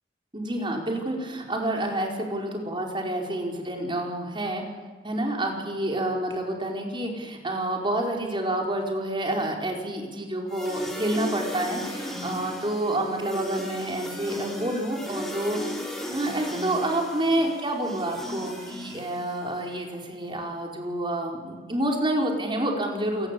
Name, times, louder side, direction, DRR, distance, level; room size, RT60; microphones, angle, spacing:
voice 1, 0.3-4.6 5.0-15.7 16.1-23.3, right 1 dB, 30° right, 1 dB, 4.9 m, -28 dB
sound 1, 10.5-19.6, left 1 dB, ahead, 4.8 m, -36 dB
27.5 x 19.5 x 8.6 m, 1.4 s
head